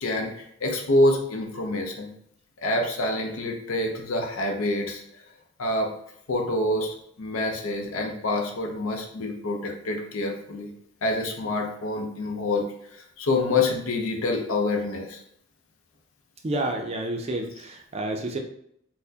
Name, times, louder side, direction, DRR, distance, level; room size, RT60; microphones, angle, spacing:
voice 1, 0.0-2.1 2.6-5.0 5.6-5.9 6.3-10.7 11.0-12.7 12.9-15.2, left 2 dB, 75° left, 3 dB, 0.6 m, -26 dB
voice 2, 16.4-18.4, right 1 dB, 30° right, 4 dB, 0.4 m, -29 dB
4.3 x 2.1 x 2.7 m, 0.71 s
head